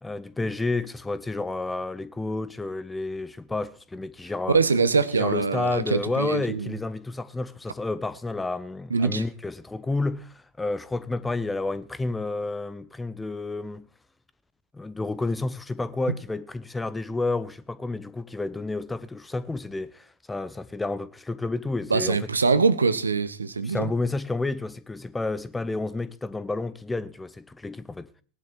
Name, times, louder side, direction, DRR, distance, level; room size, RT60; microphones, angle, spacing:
voice 1, 0.0-4.6 5.1-13.9 14.7-22.3 23.6-28.1, left 2 dB, 10° left, 0.9 m, -30 dB
voice 2, 4.5-6.7 8.9-9.2 21.9-23.9, right 4 dB, 75° right, 1.3 m, -23 dB
19.0 x 11.5 x 4.7 m
figure-of-eight pair, 90°, 0 cm